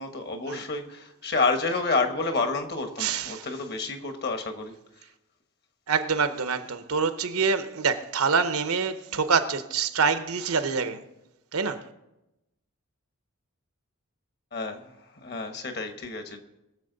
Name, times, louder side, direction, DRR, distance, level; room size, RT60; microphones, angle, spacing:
voice 1, 0.0-4.7 14.5-14.9 15.2-16.4, left 3 dB, 45° left, 1.2 m, -29 dB
voice 2, 3.0-3.5 5.9-11.0 11.5-11.8, right 5 dB, 80° right, 0.8 m, -26 dB
21.5 x 7.2 x 4.0 m
head